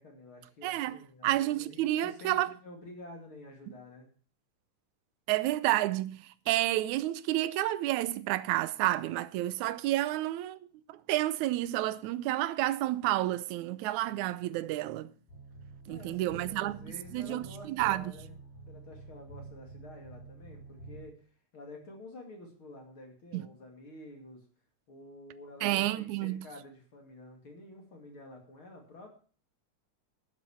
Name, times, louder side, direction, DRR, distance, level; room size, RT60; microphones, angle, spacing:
voice 1, 0.0-4.1 15.9-18.4 18.7-24.4 24.9-29.1, left 2 dB, 40° left, 3.0 m, -50 dB
voice 2, 0.6-2.5 5.3-15.1 15.9-16.8 17.1-18.1 23.3-23.5 25.6-26.4, right 15 dB, 75° right, 2.0 m, -30 dB
sound 1, 15.3-21.1, right 4 dB, 75° left, 7.3 m, -48 dB
12.5 x 8.2 x 7.1 m
omnidirectional pair, 3.7 m